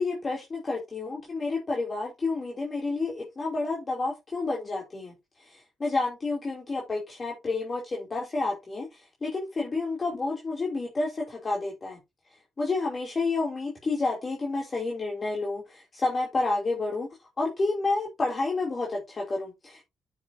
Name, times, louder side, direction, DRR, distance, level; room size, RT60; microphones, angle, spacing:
voice 1, 0.0-5.1 5.4-12.0 12.6-17.1 17.4-19.8, left 3 dB, 30° left, 2.7 m, -30 dB
9.0 x 6.7 x 2.6 m
cardioid pair, 90°, 0 cm